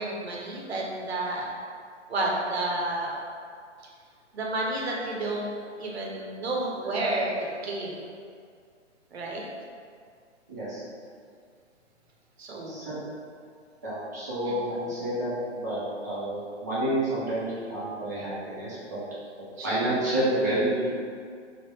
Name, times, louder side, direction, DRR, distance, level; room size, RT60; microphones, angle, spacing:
voice 1, 0.0-1.5 2.1-3.2 4.3-8.0 9.1-9.4 12.4-12.8 14.5-14.6 19.6-20.0, right 2 dB, 60° right, -2 dB, 0.8 m, -31 dB
voice 2, 10.5-10.8 12.7-13.0 13.8-19.0 19.6-20.9, right 1 dB, 15° right, -10 dB, 0.4 m, -29 dB
3.3 x 2.1 x 3.1 m, 2.2 s
figure-of-eight pair, 130°, 36 cm